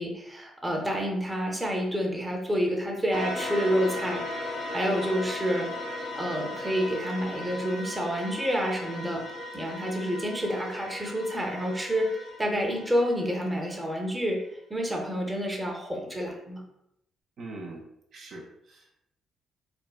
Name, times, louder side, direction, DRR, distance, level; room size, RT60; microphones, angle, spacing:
voice 1, 0.0-5.7 6.1-9.2 9.5-14.4 14.7-16.6, equal, 15° right, 0 dB, 0.6 m, -29 dB
sound 1, 3.1-13.8, left 1 dB, 75° left, 0.6 m, -37 dB
voice 2, 17.4-17.9 18.1-19.1, right 2 dB, 60° right, 0 dB, 0.4 m, -42 dB
3.3 x 2.1 x 2.3 m, 0.79 s
cardioid pair, 90°, 0 cm